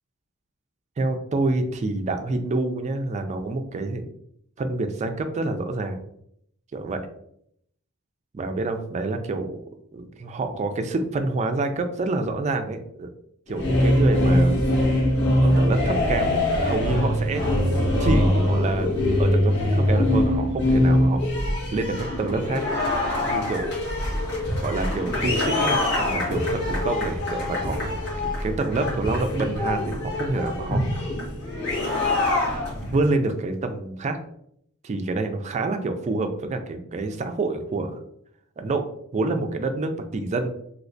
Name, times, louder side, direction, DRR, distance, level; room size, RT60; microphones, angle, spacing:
voice 1, 1.0-4.0 4.6-6.0 6.7-7.1 8.3-9.6 9.9-13.1 13.5-14.6 14.9-15.1 15.4-17.4 18.0-18.9 19.2-21.2 21.7-22.6 23.3-23.7 24.6-27.9 28.4-31.1 32.9-34.2 34.8-38.0 38.6-40.5, right 2 dB, 30° right, 7 dB, 0.3 m, -27 dB
sound 1, 13.5-33.0, left 1 dB, 55° left, 1.4 m, -23 dB
3.1 x 2.8 x 2.6 m, 0.71 s
head